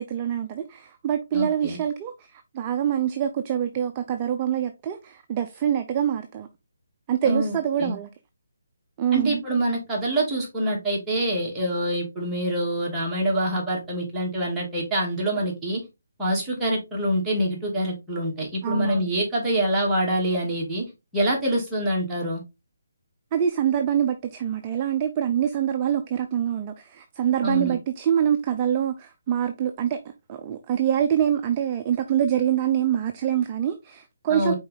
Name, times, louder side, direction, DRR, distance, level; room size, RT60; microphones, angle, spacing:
voice 1, 0.0-6.5 7.1-8.1 9.0-9.4 18.6-19.1 23.3-30.0 30.3-34.5, right 9 dB, 25° right, 0.6 m, -25 dB
voice 2, 1.3-1.8 7.2-8.0 9.1-15.8 16.2-20.8 21.1-22.4 27.4-27.7 34.3-34.5, right 1 dB, 10° right, 2.7 m, -25 dB
5.5 x 4.5 x 3.9 m
hypercardioid pair, 155°, 0 cm